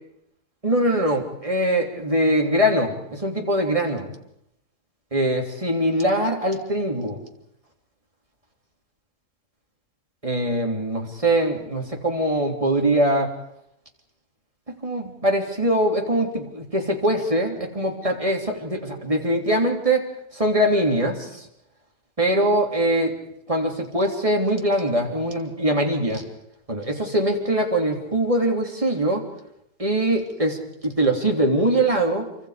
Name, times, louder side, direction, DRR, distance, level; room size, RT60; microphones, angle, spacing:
voice 1, 0.6-4.1 5.1-7.2 10.2-13.3 14.8-20.1 20.3-21.4 22.2-23.2 23.5-26.2 26.7-29.2 29.8-30.6 30.8-32.3, right 1 dB, 20° right, 1 dB, 3.3 m, -22 dB
28.0 x 24.5 x 5.1 m, 0.77 s
omnidirectional pair, 1.6 m